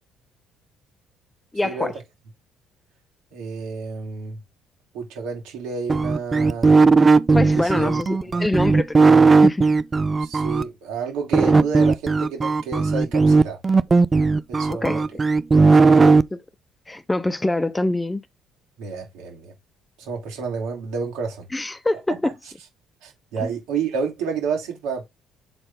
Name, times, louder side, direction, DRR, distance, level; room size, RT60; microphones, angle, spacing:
voice 1, 1.5-1.9 7.3-9.1 9.4-9.7 14.7-15.0 16.9-18.2 21.5-22.3 23.4-23.5, left 2 dB, 15° left, 0.8 m, -24 dB
voice 2, 3.3-4.4 4.9-6.7 7.6-8.0 10.2-13.6 14.5-15.0 15.8-16.2 18.8-19.5 20.0-21.5 22.2-22.3 23.0-25.1, right 5 dB, 80° right, 3.7 m, -30 dB
sound 1, 5.9-10.6 11.3-16.2, right 4 dB, 30° right, 0.5 m, -16 dB
7.8 x 4.1 x 3.7 m
supercardioid pair, 75°, 0 cm